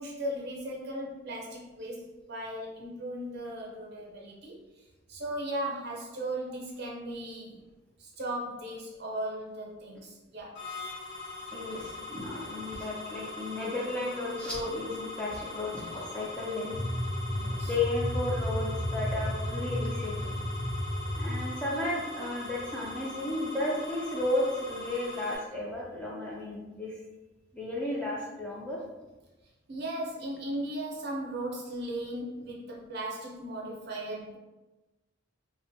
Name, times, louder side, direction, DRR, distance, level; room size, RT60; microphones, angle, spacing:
voice 1, 0.0-4.6 5.1-7.6 8.0-10.6 17.3-17.7 29.7-34.4, right 1 dB, 55° right, -2 dB, 0.6 m, -37 dB
sound 1, 10.5-25.4, left 3 dB, 90° left, 1.0 m, -41 dB
voice 2, 11.5-16.7 17.7-20.3 21.2-27.0 27.5-28.8, left 2 dB, 5° left, -5 dB, 0.3 m, -33 dB
sound 2, 16.7-21.4, equal, 55° left, 0.6 m, -32 dB
2.5 x 2.1 x 2.7 m, 1.1 s
head